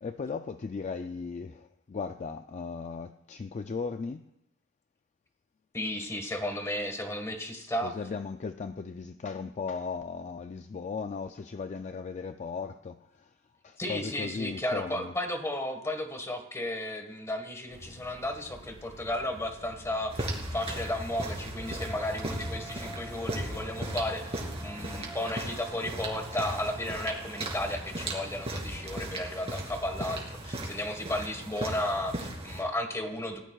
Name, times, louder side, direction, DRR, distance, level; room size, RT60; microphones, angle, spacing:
voice 1, 0.0-4.3 7.8-13.4 13.6-15.1, left 5 dB, 35° left, 0.4 m, -37 dB
voice 2, 5.7-7.9 13.8-33.4, left 1 dB, 15° left, 1.5 m, -34 dB
sound 1, 17.7-24.0, equal, 75° left, 1.3 m, -49 dB
sound 2, 20.1-32.6, right 1 dB, 30° right, 2.8 m, -37 dB
sound 3, 21.5-29.1, right 1 dB, ahead, 5.4 m, -48 dB
20.0 x 17.5 x 2.4 m
head